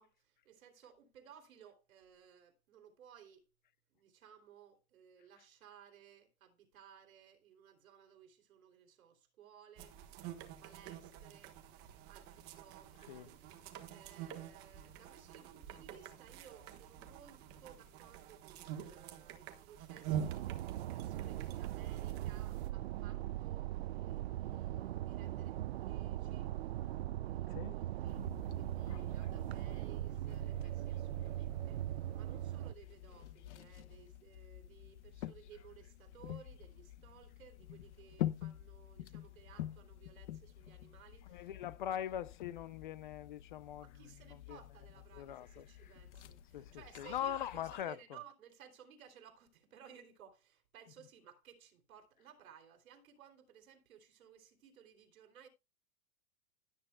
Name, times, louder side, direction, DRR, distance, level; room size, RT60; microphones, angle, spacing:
voice 1, 0.0-3.4 3.9-10.0 10.6-11.6 12.1-13.4 13.9-26.5 27.2-28.3 28.5-41.5 43.8-55.5, right 8 dB, 80° right, 3.5 m, -59 dB
sound 1, 9.8-22.7, right 9 dB, 25° right, 1.3 m, -47 dB
sound 2, 20.1-32.7, right 13 dB, 50° right, 0.4 m, -40 dB
sound 3, 28.1-47.8, left 13 dB, 55° left, 1.1 m, -48 dB
voice 2, 41.3-43.9 44.5-44.6 45.1-45.9 46.5-46.7 47.0-48.0, left 10 dB, 40° left, 0.5 m, -42 dB
16.5 x 9.4 x 2.3 m
supercardioid pair, 170°, 41 cm